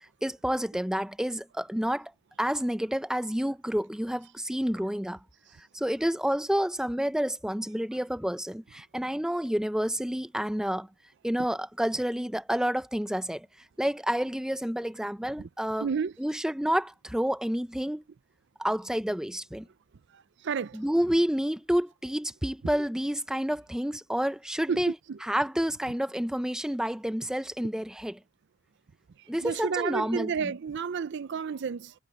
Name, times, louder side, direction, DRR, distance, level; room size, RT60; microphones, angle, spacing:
voice 1, 0.2-2.1 2.4-5.2 5.7-10.9 11.2-13.5 13.8-15.9 16.2-18.0 18.6-19.7 20.7-25.0 25.2-28.2 29.3-30.5, equal, 5° right, 0.6 m, -29 dB
voice 2, 15.8-16.1 20.4-20.8 24.7-24.8 25.1-25.2 29.4-31.9, right 6 dB, 55° right, 0.4 m, -31 dB
head